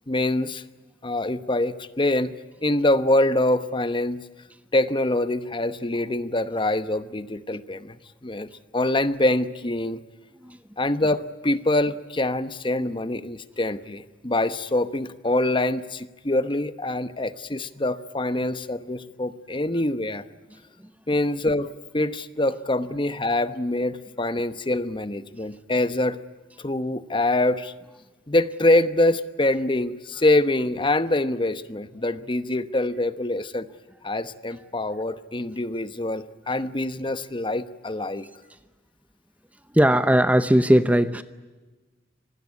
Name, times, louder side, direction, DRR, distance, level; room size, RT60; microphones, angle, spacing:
voice 1, 0.1-0.6 1.0-2.3 2.6-4.2 4.7-10.0 10.8-20.2 21.1-26.2 26.6-27.7 28.3-33.7 34.0-38.3, left 1 dB, 25° left, 12 dB, 1.0 m, -25 dB
voice 2, 39.7-41.2, right 1 dB, 10° right, 12 dB, 0.7 m, -18 dB
26.0 x 19.5 x 9.6 m, 1.2 s
head